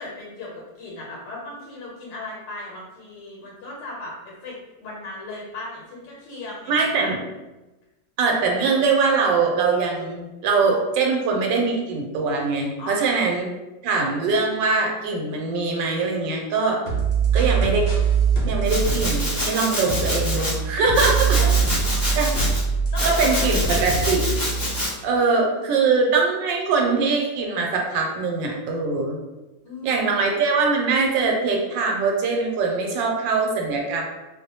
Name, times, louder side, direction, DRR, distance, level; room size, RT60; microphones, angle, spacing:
voice 1, 0.0-7.1 12.8-13.3 21.1-21.5 22.9-24.0 25.2-25.8 29.6-30.3, left 2 dB, 80° left, -3 dB, 1.2 m, -37 dB
voice 2, 6.7-7.2 8.2-13.5 13.8-16.8 17.3-17.9 18.4-21.4 22.1-22.3 23.0-24.3 25.0-29.2 29.8-34.0, right 4 dB, 85° right, 0 dB, 1.3 m, -22 dB
sound 1, 16.9-19.6 19.9-24.9, right 5 dB, 60° left, 0.8 m, -23 dB
Domestic sounds home sounds, 18.6-20.5 20.9-22.6 23.0-24.9, left 1 dB, 25° left, 0.4 m, -27 dB
2.9 x 2.1 x 2.7 m, 1.1 s
omnidirectional pair, 1.9 m